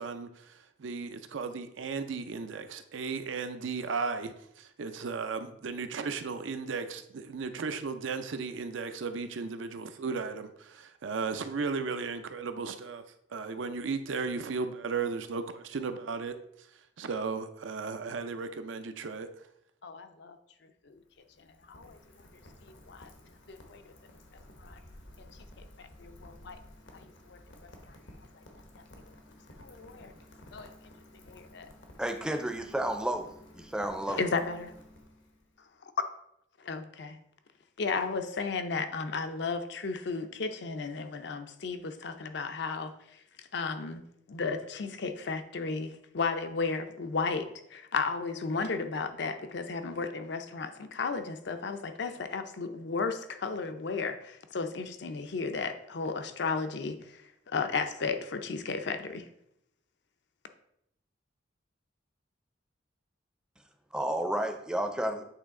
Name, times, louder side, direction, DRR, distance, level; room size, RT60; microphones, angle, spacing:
voice 1, 0.0-13.0 13.3-16.4 17.0-19.3, right 4 dB, 75° right, 9 dB, 0.5 m, -35 dB
voice 2, 19.8-20.4 20.6-21.0 21.4-22.0 22.6-23.1 23.5-23.9 24.6-24.8 25.2-25.3 25.6-26.6 26.9-27.4 27.9-28.0 29.6-30.1 30.5-30.7 31.3-31.7 34.1-34.7 36.6-37.2 37.8-44.0 44.3-59.3, left 4 dB, 60° left, 8 dB, 0.5 m, -34 dB
Rain, 20.8-35.6, left 1 dB, 80° left, 1.0 m, -54 dB
voice 3, 32.0-33.3 33.6-34.2 63.9-65.2, right 1 dB, 5° right, 6 dB, 0.5 m, -31 dB
8.3 x 3.2 x 3.7 m, 0.76 s
head